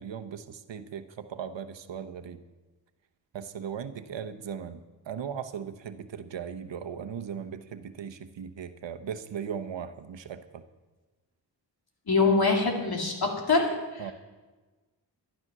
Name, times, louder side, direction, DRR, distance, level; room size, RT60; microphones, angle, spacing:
voice 1, 0.0-2.4 3.3-4.8 5.1-10.6 14.0-14.1, right 7 dB, 80° right, 8 dB, 1.0 m, -38 dB
voice 2, 12.1-14.1, left 4 dB, 55° left, 1 dB, 2.8 m, -24 dB
12.5 x 11.5 x 6.1 m, 1.3 s
wide cardioid pair, 100°, 43 cm